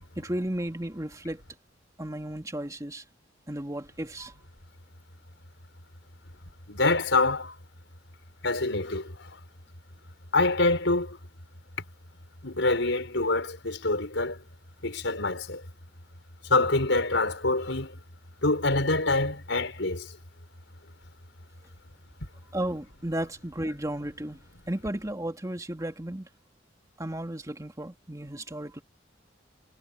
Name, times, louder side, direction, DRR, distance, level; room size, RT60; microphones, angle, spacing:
voice 1, 0.2-1.4 2.0-3.0 3.5-4.3 22.5-24.4 24.7-26.3 27.0-28.8, right 1 dB, 20° right, 2.1 m, -34 dB
voice 2, 6.7-7.5 8.4-9.0 10.3-11.2 12.4-14.4 14.8-15.6 16.5-17.9 18.4-20.1, left 2 dB, 85° left, 5.1 m, -25 dB
head